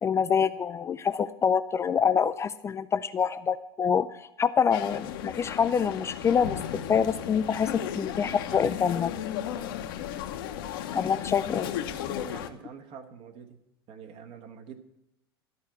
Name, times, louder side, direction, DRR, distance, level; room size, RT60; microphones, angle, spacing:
voice 1, 0.0-6.6 6.9-9.1 10.9-11.7, left 7 dB, 20° left, 12 dB, 0.4 m, -26 dB
sound 1, 4.7-12.5, left 10 dB, 60° left, 0.9 m, -35 dB
voice 2, 12.3-13.6 13.9-14.8, right 7 dB, 45° right, 7 dB, 1.3 m, -46 dB
13.5 x 4.5 x 7.7 m, 0.88 s
figure-of-eight pair, 85°, 13 cm